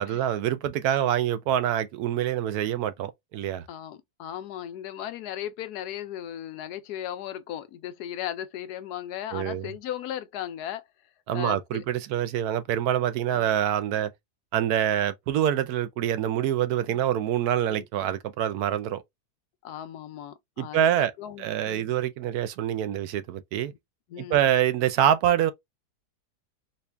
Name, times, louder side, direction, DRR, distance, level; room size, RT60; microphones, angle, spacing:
voice 1, 0.0-3.6 9.3-9.7 11.3-14.1 14.5-19.0 20.6-21.1 21.4-23.7 24.2-25.5, right 10 dB, 75° right, 1.1 m, -25 dB
voice 2, 3.7-10.8 11.3-11.8 13.3-13.5 16.9-17.0 17.7-17.8 19.6-21.9 24.1-24.5, left 11 dB, 80° left, 1.1 m, -37 dB
4.1 x 2.3 x 3.2 m
omnidirectional pair, 1.7 m